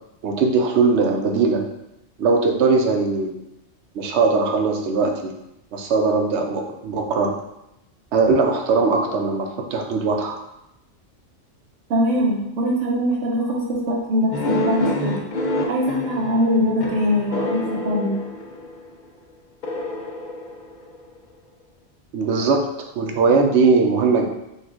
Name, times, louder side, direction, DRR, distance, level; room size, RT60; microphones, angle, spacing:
voice 1, 0.2-1.6 2.2-3.4 3.9-5.3 5.7-7.3 8.1-10.4 22.1-22.7 22.9-24.3, right 4 dB, 70° right, 3 dB, 0.9 m, -20 dB
voice 2, 11.9-15.1 15.7-18.2, equal, 90° right, -1 dB, 1.2 m, -22 dB
sound 1, 14.3-18.9 19.6-21.2, left 1 dB, 50° left, 0.6 m, -27 dB
5.3 x 2.4 x 3.7 m, 0.87 s
omnidirectional pair, 1.2 m